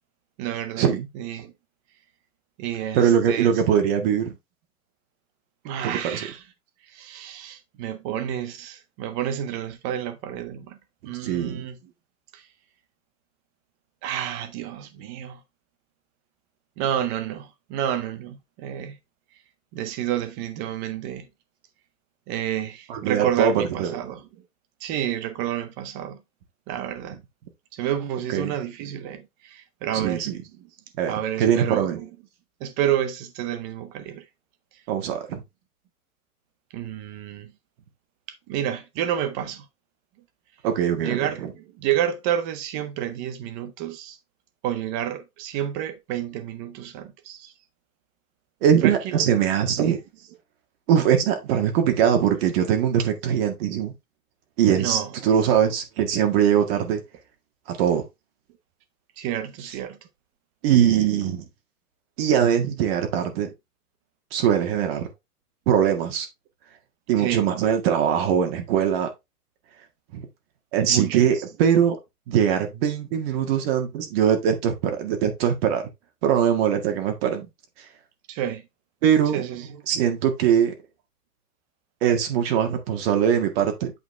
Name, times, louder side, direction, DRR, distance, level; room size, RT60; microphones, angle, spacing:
voice 1, 0.4-0.9 1.1-1.5 2.6-3.5 5.6-6.4 6.9-10.8 11.0-11.8 12.3-12.5 14.0-15.4 16.8-19.0 19.7-21.3 22.3-24.4 24.8-26.2 26.7-27.2 27.7-30.3 30.6-30.7 31.1-32.1 32.6-34.2 36.7-37.5 38.5-39.7 41.0-44.2 44.6-47.5 48.8-49.4 49.8-50.0 54.8-55.1 59.2-60.0 67.2-67.5 70.8-71.4 78.3-78.6 79.3-79.8, right 10 dB, 20° right, 0.6 m, -30 dB
voice 2, 2.9-4.3 5.8-6.3 11.2-11.6 22.9-23.9 28.3-28.5 29.9-30.4 31.0-32.0 34.9-35.4 40.6-41.5 48.6-50.0 50.9-53.9 54.6-57.0 57.7-58.0 60.6-61.4 62.2-63.5 64.3-65.1 65.7-66.3 67.1-69.1 70.1-70.3 70.7-72.0 72.3-75.8 76.2-77.5 79.0-79.4 79.9-80.7 82.0-83.9, right 9 dB, 40° right, 1.8 m, -21 dB
8.4 x 4.5 x 3.3 m
hypercardioid pair, 145°, 46 cm